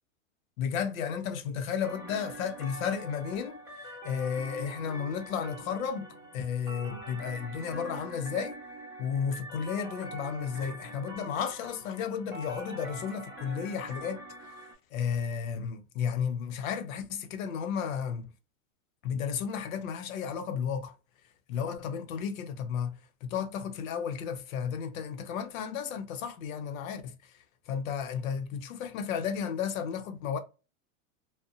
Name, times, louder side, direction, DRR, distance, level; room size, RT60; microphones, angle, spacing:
voice 1, 0.6-8.6 9.0-14.2 14.9-18.3 19.0-20.9 21.5-22.9 23.2-27.1 27.7-30.4, left 7 dB, 90° left, 0.7 m, -33 dB
sound 1, 1.8-14.7, right 1 dB, 5° right, 0.9 m, -44 dB
2.6 x 2.1 x 2.4 m
supercardioid pair, 155°, 39 cm